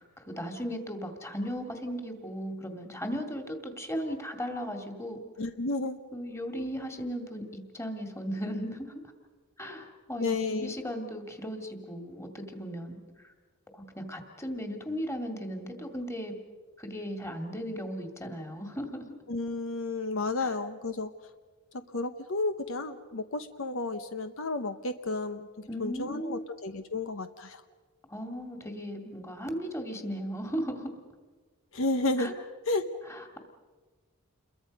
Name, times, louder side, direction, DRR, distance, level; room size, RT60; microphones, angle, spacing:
voice 1, 0.0-5.2 6.1-9.0 9.6-13.3 13.7-16.3 16.8-19.1 20.4-20.5 25.7-26.5 28.1-30.9 32.2-32.3 33.1-33.4, equal, 15° left, 5 dB, 2.2 m, -36 dB
voice 2, 5.4-6.0 10.2-10.7 19.3-21.1 21.9-27.6 31.7-32.3 32.7-32.9, left 2 dB, 65° left, 9 dB, 0.9 m, -32 dB
29.0 x 22.5 x 5.3 m, 1.3 s
head